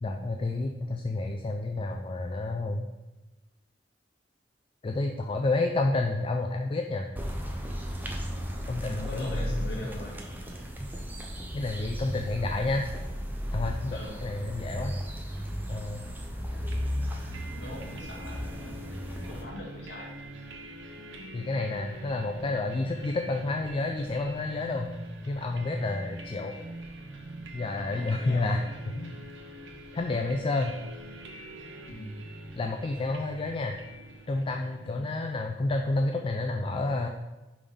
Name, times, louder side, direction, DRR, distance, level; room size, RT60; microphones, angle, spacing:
voice 1, 0.0-2.9 4.8-7.1 8.7-9.7 11.5-12.9 13.5-14.9 15.7-16.1 21.3-24.9 25.3-26.5 27.5-28.6 28.9-29.1 29.9-30.8 32.6-33.8 34.3-37.1, left 2 dB, 30° left, 3 dB, 0.3 m, -30 dB
sound 1, 7.2-19.4, equal, 10° right, 0.6 m, -35 dB
voice 2, 8.8-10.2 13.9-14.2 17.6-18.7 19.3-20.1 27.9-28.7 31.9-32.2 34.8-35.1, left 1 dB, 65° left, -2 dB, 1.1 m, -42 dB
sound 2, 16.7-35.4, right 1 dB, 85° right, 0.9 m, -44 dB
5.1 x 3.5 x 5.4 m, 1.1 s
head